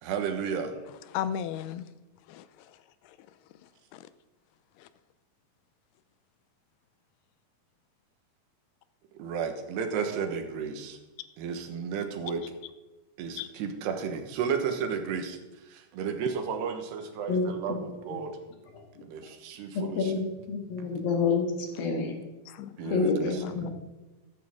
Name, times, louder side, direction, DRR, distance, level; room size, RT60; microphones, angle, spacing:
voice 1, 0.0-0.7 9.1-11.0 11.4-12.4 13.2-15.4 15.6-18.4 19.0-20.1 22.8-23.7, right 6 dB, 85° right, 6 dB, 3.3 m, -33 dB
voice 2, 1.1-1.9 2.3-2.7 3.0-3.2 3.9-4.1 4.8-4.9 13.4-13.5 22.5-23.0 23.3-23.7, left 10 dB, 85° left, 13 dB, 2.6 m, -36 dB
voice 3, 17.3-17.8 19.7-22.1 22.9-23.7, left 4 dB, 65° left, 2 dB, 3.4 m, -28 dB
13.5 x 11.0 x 3.6 m, 1.1 s
omnidirectional pair, 4.7 m